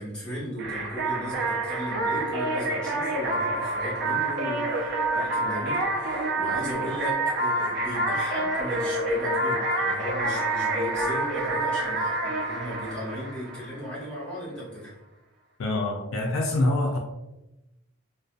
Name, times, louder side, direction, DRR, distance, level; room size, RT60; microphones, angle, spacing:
voice 1, 0.0-14.9, equal, 5° left, -8 dB, 1.0 m, -36 dB
Female Vocal Chops, 0.6-14.0, right 2 dB, 50° right, 0.4 m, -27 dB
voice 2, 15.6-17.0, left 2 dB, 65° left, 1 dB, 0.3 m, -25 dB
2.5 x 2.2 x 2.4 m, 0.96 s
head